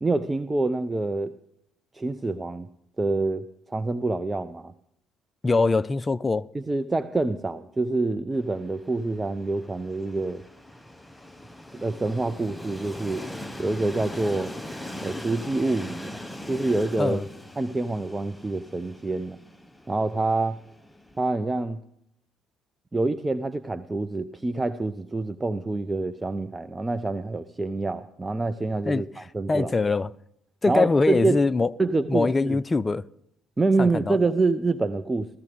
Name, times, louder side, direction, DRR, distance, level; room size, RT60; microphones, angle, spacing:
voice 1, 0.0-1.3 1.9-2.7 3.0-4.7 6.5-10.4 11.7-13.2 13.6-14.5 15.0-16.2 16.5-17.2 17.6-19.4 19.9-20.6 21.2-21.8 22.9-29.7 30.7-31.4 31.8-32.6 33.6-35.4, right 2 dB, 20° right, 0.6 m, -26 dB
voice 2, 5.4-6.5 17.0-17.2 28.8-29.1 29.5-30.1 30.6-31.7 32.1-33.0 33.8-34.2, left 3 dB, 25° left, 0.5 m, -23 dB
Train, 8.4-21.3, left 1 dB, 10° left, 0.9 m, -41 dB
15.5 x 13.5 x 5.1 m
hypercardioid pair, 50°, 0 cm